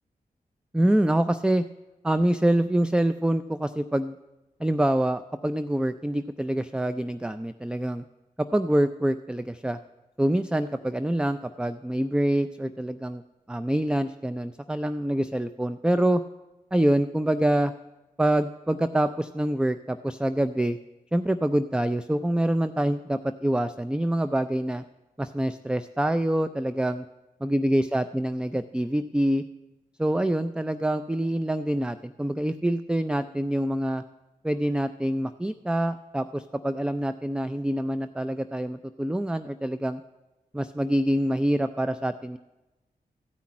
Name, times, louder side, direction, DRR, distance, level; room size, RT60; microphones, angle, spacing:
voice 1, 0.7-1.6 2.0-4.2 4.6-8.0 8.4-9.8 10.2-13.2 13.5-16.2 16.7-17.7 18.2-20.8 21.1-24.8 25.2-27.1 27.4-29.4 30.0-34.0 34.4-40.0 40.5-42.4, right 1 dB, 5° right, 11 dB, 0.4 m, -25 dB
14.5 x 5.8 x 8.5 m, 1.0 s
cardioid pair, 40°, 17 cm